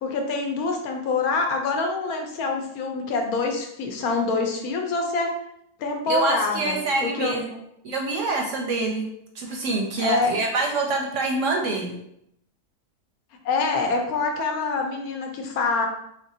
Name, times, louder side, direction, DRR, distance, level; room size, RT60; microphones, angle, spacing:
voice 1, 0.0-5.3 5.8-7.4 10.0-10.3 13.4-15.9, left 3 dB, 75° left, 3 dB, 1.1 m, -25 dB
voice 2, 6.1-7.6 7.8-9.1 9.3-12.0, right 3 dB, 70° right, 1 dB, 0.8 m, -26 dB
3.7 x 3.4 x 2.7 m, 0.76 s
omnidirectional pair, 1.6 m